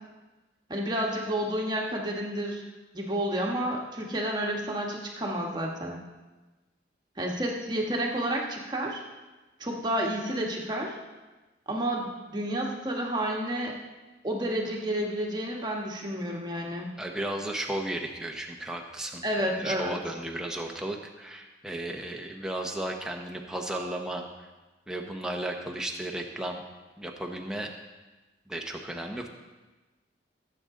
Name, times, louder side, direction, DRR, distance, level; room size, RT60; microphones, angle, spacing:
voice 1, 0.7-2.6 2.9-6.0 7.2-9.0 9.6-10.9 11.7-13.8 14.2-16.9 19.2-20.0, right 1 dB, 25° right, -1 dB, 1.5 m, -30 dB
voice 2, 17.0-24.3 24.9-26.6 27.0-27.7 28.5-29.3, right 1 dB, 5° right, 1 dB, 1.0 m, -34 dB
17.5 x 7.9 x 3.8 m, 1.2 s
head